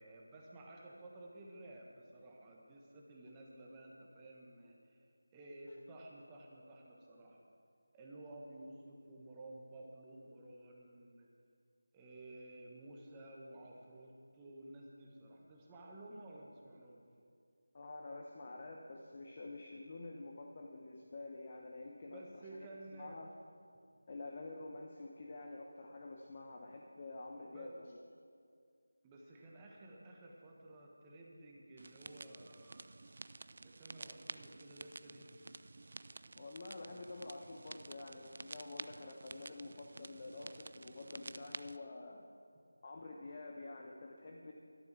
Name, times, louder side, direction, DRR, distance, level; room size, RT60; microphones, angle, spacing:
voice 1, 0.0-7.4 7.9-11.3 11.9-17.0 22.1-23.2 27.5-27.7 29.0-32.9 33.6-35.6, right 1 dB, 15° right, -2 dB, 1.3 m, -54 dB
voice 2, 17.7-23.3 24.1-28.0 36.4-42.3 42.8-44.5, left 2 dB, 35° left, 1 dB, 0.9 m, -48 dB
sound 1, 31.8-41.8, right 3 dB, 50° right, 0.3 m, -51 dB
13.0 x 11.5 x 6.1 m, 2.2 s
figure-of-eight pair, 165°, 0 cm